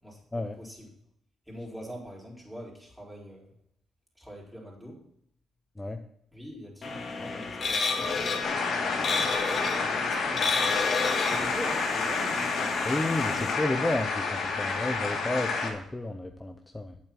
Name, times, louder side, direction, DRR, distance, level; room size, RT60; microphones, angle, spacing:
voice 1, 0.0-0.9 1.5-3.5 4.2-5.0 6.3-12.7 13.0-13.6, equal, ahead, -3 dB, 4.1 m, -44 dB
sound 1, 6.8-13.5, left 4 dB, 50° left, 2.0 m, -31 dB
sound 2, 8.4-15.7, left 4 dB, 70° left, 2.7 m, -30 dB
voice 2, 12.8-17.0, left 2 dB, 15° left, 4 dB, 0.8 m, -31 dB
9.0 x 7.2 x 5.9 m, 0.71 s
cardioid pair, 90°, 0 cm